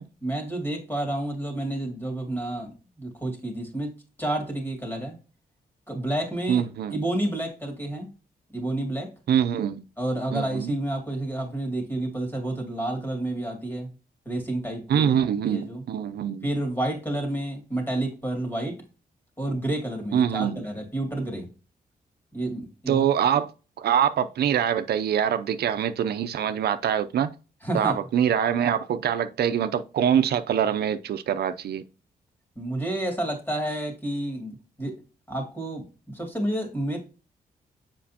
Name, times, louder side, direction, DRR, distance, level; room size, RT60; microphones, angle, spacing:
voice 1, 0.2-3.9 4.2-5.2 5.9-6.6 6.9-8.1 8.5-9.1 10.0-13.9 14.3-15.2 15.5-15.8 16.4-18.8 19.4-21.5 22.3-23.0 27.6-28.0 32.6-35.0 35.3-37.0, right 1 dB, 15° left, 2.5 m, -30 dB
voice 2, 6.5-7.0 9.3-9.8 10.3-10.7 14.9-16.5 20.1-20.6 22.9-23.5 23.8-27.3 27.7-31.8, right 9 dB, 80° right, 0.6 m, -24 dB
7.3 x 5.1 x 2.8 m
cardioid pair, 120°, 16 cm